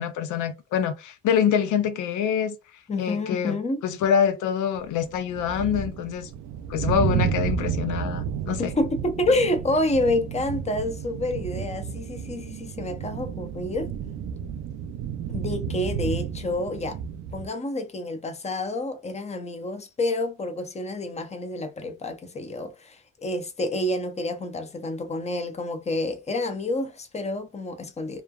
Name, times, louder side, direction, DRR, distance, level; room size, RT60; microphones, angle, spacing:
voice 1, 0.0-2.6 3.0-3.6 3.8-6.3 6.7-8.7, left 8 dB, 80° left, 0.5 m, -25 dB
voice 2, 2.9-3.8 8.6-13.9 15.3-17.0 17.3-28.2, left 2 dB, 20° left, 0.7 m, -28 dB
sound 1, 4.8-17.5, right 8 dB, 70° right, 0.5 m, -31 dB
3.1 x 2.3 x 2.3 m
cardioid pair, 90°, 30 cm